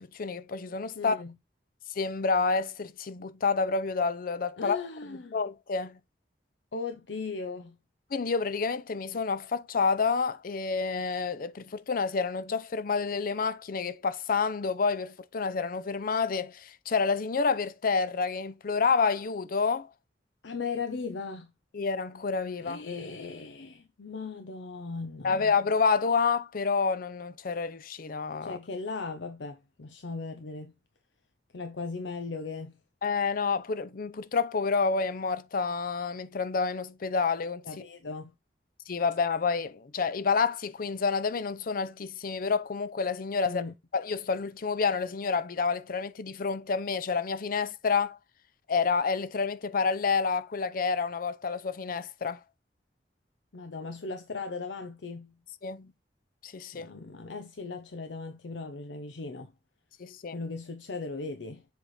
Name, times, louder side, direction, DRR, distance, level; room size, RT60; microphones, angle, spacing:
voice 1, 0.0-1.2 2.0-6.0 8.1-19.9 21.7-22.8 25.2-28.6 33.0-37.6 38.9-43.6 43.9-48.2 48.7-52.4 55.6-55.9 56.4-56.9 60.0-60.4, left 5 dB, 55° left, 0.5 m, -29 dB
voice 2, 1.0-1.3 4.6-5.4 6.7-7.8 20.4-21.5 22.6-25.5 28.4-30.7 31.5-32.8 37.6-38.3 43.5-43.7 53.5-55.3 56.7-59.5 60.3-61.7, left 4 dB, 90° left, 0.7 m, -38 dB
7.4 x 3.4 x 4.2 m
head